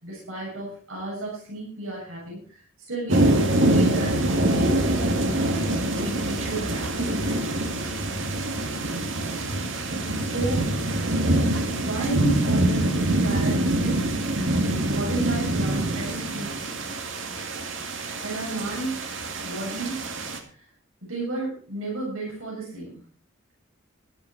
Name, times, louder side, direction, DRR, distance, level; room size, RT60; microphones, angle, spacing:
voice 1, 0.0-2.6 2.9-4.8 5.4-6.9 10.3-10.7 11.7-14.0 14.8-16.6 18.2-19.0 19.4-20.0 21.0-22.9, right 2 dB, 90° right, -4 dB, 7.3 m, -32 dB
sound 1, 3.1-20.4, right 1 dB, 65° right, 2.3 m, -25 dB
14.0 x 12.5 x 4.8 m, 0.41 s
head